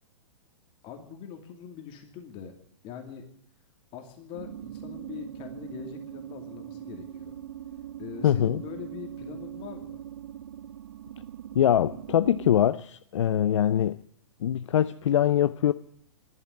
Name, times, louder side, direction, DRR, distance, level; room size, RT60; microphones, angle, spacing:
voice 1, 0.8-2.5 2.8-3.2 3.9-7.4 8.0-10.0, left 8 dB, 35° left, 2.6 m, -42 dB
sound 1, 4.3-12.6, right 11 dB, 70° right, 0.6 m, -41 dB
voice 2, 8.2-8.6 11.5-14.0 14.4-15.7, left 10 dB, 70° left, 0.6 m, -23 dB
13.5 x 11.0 x 9.8 m
hypercardioid pair, 125°, 16 cm